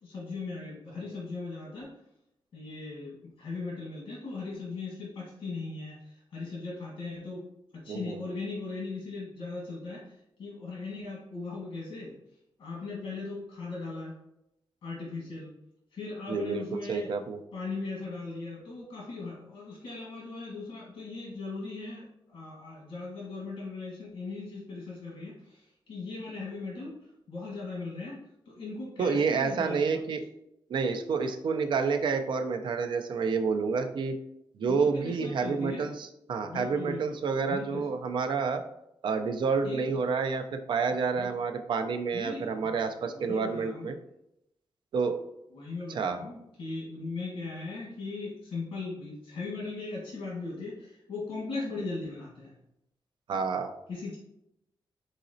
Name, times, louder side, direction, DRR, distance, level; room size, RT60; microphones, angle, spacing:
voice 1, 0.0-1.9 2.5-12.1 12.6-14.2 14.8-15.5 15.9-17.1 17.5-27.0 27.3-28.2 28.4-30.0 34.7-35.9 36.4-37.2 37.5-37.8 39.6-40.0 41.1-41.3 42.1-42.7 43.0-43.9 45.5-52.6 53.9-54.2, left 3 dB, 65° left, -5 dB, 1.3 m, -38 dB
voice 2, 7.9-8.2 16.3-17.4 29.0-30.2 30.7-34.1 34.6-38.6 39.0-44.0 44.9-45.2 45.9-46.2 53.3-53.7, right 5 dB, 65° right, 6 dB, 0.5 m, -29 dB
4.0 x 3.9 x 2.6 m, 0.83 s
wide cardioid pair, 160°, 9 cm